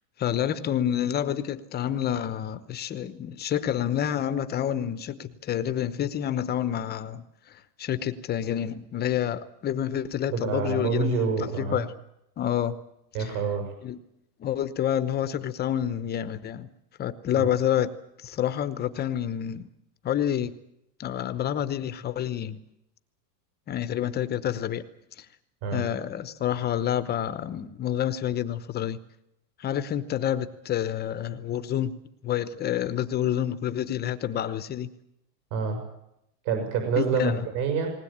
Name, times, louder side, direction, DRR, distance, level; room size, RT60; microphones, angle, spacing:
voice 1, 0.2-11.9 12.4-12.8 13.2-13.3 13.8-14.0 14.4-16.7 17.0-17.9 18.2-19.7 20.0-20.5 21.0-22.6 23.7-24.9 25.2-25.3 25.7-29.0 29.6-31.9 32.2-34.9 37.0-37.4, left 10 dB, 20° left, 0.9 m, -28 dB
voice 2, 10.3-11.8 13.1-13.7 17.3-17.5 25.6-25.8 35.5-35.8 36.4-37.9, right 5 dB, 55° right, 6.7 m, -27 dB
20.0 x 19.5 x 8.7 m
supercardioid pair, 160°, 50 cm